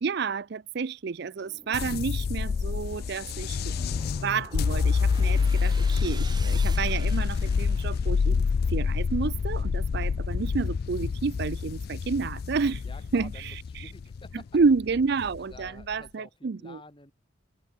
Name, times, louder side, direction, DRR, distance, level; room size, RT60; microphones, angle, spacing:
voice 1, 0.0-3.7 4.2-8.4 8.7-12.8 13.1-13.8 14.5-16.8, right 4 dB, 55° right, 0.5 m, -30 dB
sound 1, 1.4-8.6, right 4 dB, 20° right, 6.6 m, -48 dB
sound 2, 1.7-15.9, left 5 dB, 50° left, 0.3 m, -27 dB
voice 2, 12.8-14.6 15.5-17.1, left 2 dB, 25° left, 5.5 m, -50 dB
head